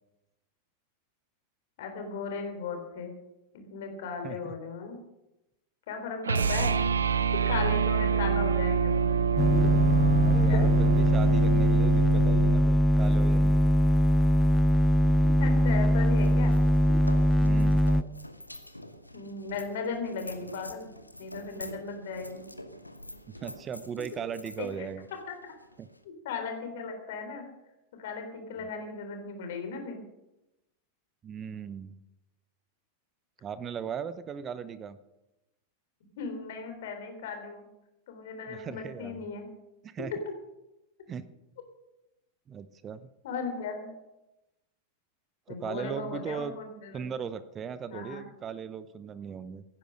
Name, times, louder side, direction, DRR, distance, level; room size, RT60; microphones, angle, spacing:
voice 1, 1.8-3.1 3.5-5.0 5.9-6.8 7.5-9.1 10.5-10.7 15.2-16.6 19.1-20.9 21.2-22.4 24.6-24.9 25.3-25.5 26.2-27.5 27.9-30.0 36.2-37.6 38.1-39.5 43.2-43.9 45.5-47.2 47.9-48.2, left 4 dB, 55° left, 5 dB, 3.7 m, -36 dB
sound 1, 6.2-12.6, right 6 dB, 70° right, 0.6 m, -27 dB
sound 2, 9.4-18.0, equal, 5° left, 0.4 m, -22 dB
voice 2, 10.2-13.7 17.4-17.8 23.4-25.0 25.8-25.9 28.6-28.7 31.2-32.0 33.4-35.0 38.5-39.3 39.8-40.1 41.1-41.2 42.5-43.1 45.5-46.6 46.9-49.6, right 7 dB, 25° right, 15 dB, 0.8 m, -38 dB
sound 3, 16.0-26.0, left 1 dB, 85° left, 1.1 m, -46 dB
16.5 x 10.5 x 6.5 m, 0.95 s
figure-of-eight pair, 90°, 0 cm